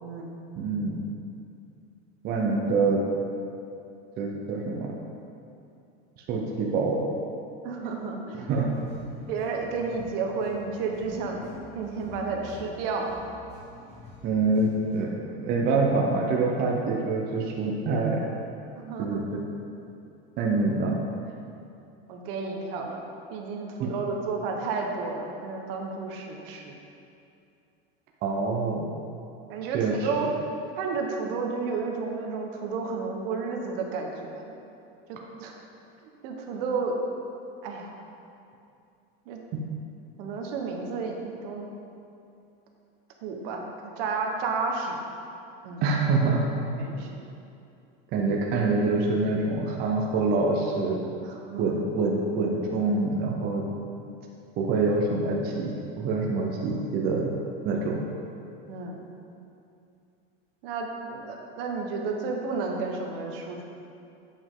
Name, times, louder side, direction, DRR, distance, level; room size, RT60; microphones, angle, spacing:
voice 1, 0.0-0.4 7.6-8.5 9.3-11.4 11.7-13.1 18.8-19.3 22.1-23.0 23.3-26.7 29.5-30.3 30.8-34.4 35.1-35.6 36.0-37.0 37.6-37.9 39.3-39.4 40.2-41.7 43.2-45.0 45.6-45.8 46.8-47.2 51.2-51.8 58.7-59.0 60.6-63.6, right 4 dB, 65° right, 1 dB, 1.0 m, -32 dB
voice 2, 0.6-1.0 2.2-3.0 4.2-4.9 6.3-7.0 8.4-8.7 14.2-15.1 15.4-18.2 19.0-19.4 20.4-21.0 23.8-23.9 28.2-28.9 29.7-30.1 39.5-39.6 45.8-46.5 48.1-51.0 51.6-53.6 54.6-57.3 57.6-58.0, right 3 dB, 30° right, -1 dB, 0.6 m, -25 dB
sound 1, 8.5-15.1, left 1 dB, 20° left, 1.3 m, -47 dB
8.5 x 5.1 x 3.7 m, 2.7 s
cardioid pair, 170°, 31 cm